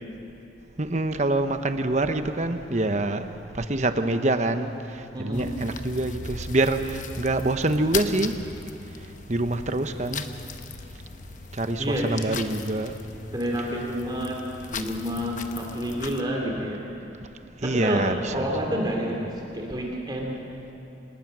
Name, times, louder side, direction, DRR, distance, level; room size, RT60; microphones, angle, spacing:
voice 1, 0.8-8.4 9.3-10.2 11.5-12.9 17.6-18.5, right 2 dB, 40° right, 8 dB, 1.0 m, -26 dB
voice 2, 5.1-5.6 11.8-12.3 13.3-14.4 14.7-16.8 17.6-18.1 18.3-19.3 19.5-20.4, equal, 25° right, 0 dB, 2.6 m, -29 dB
sound 1, 5.3-16.2, left 5 dB, 45° left, 0.9 m, -38 dB
26.5 x 19.5 x 6.2 m, 2.9 s
head